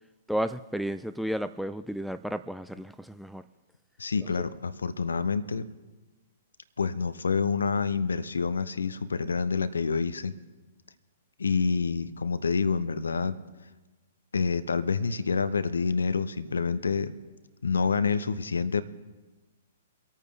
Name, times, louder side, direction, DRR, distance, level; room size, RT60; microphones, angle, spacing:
voice 1, 0.3-3.5, equal, ahead, 11 dB, 0.3 m, -32 dB
voice 2, 4.0-5.7 6.8-10.4 11.4-13.4 14.3-17.1 17.6-18.8, left 5 dB, 75° left, 15 dB, 0.6 m, -27 dB
25.0 x 8.9 x 3.3 m, 1.2 s
figure-of-eight pair, 115°, 0 cm